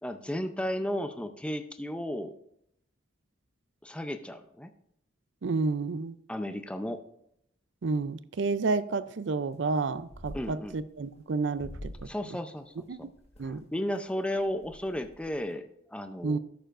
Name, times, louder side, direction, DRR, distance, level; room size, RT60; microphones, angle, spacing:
voice 1, 0.0-2.3 3.8-4.7 6.3-7.0 10.3-10.8 12.0-12.7 13.4-16.4, left 1 dB, 5° left, 0.5 m, -34 dB
voice 2, 5.4-6.2 7.8-11.9 12.9-13.1 13.4-13.6 16.2-16.4, right 3 dB, 65° right, 0.5 m, -30 dB
sound 1, 9.5-9.8 10.0-11.1 11.5-12.2 12.6-13.6 14.1-14.2 14.4-15.5, equal, 30° left, 1.4 m, -46 dB
13.5 x 6.8 x 2.5 m
head